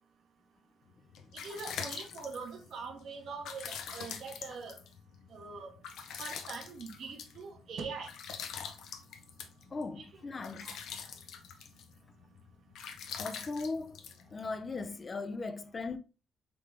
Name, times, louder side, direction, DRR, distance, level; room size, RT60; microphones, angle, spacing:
sound 1, 0.9-14.9, left 7 dB, 80° left, 0.6 m, -45 dB
voice 1, 1.4-4.7 5.3-5.7 6.2-8.1 10.0-10.1 10.6-10.8, right 5 dB, 65° right, 1.0 m, -43 dB
voice 2, 9.7-10.8 13.2-14.0 14.3-16.0, left 3 dB, 35° left, 0.4 m, -38 dB
3.8 x 3.4 x 3.3 m
cardioid pair, 90°, 0 cm